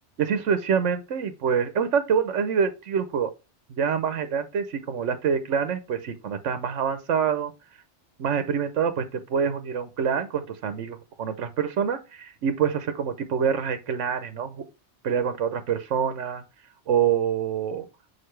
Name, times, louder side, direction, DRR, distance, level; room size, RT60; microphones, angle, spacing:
voice 1, 0.2-3.3 3.7-7.5 8.2-14.6 15.0-16.4 16.9-17.9, right 7 dB, 80° right, 1.2 m, -26 dB
6.6 x 4.6 x 3.1 m
omnidirectional pair, 1.2 m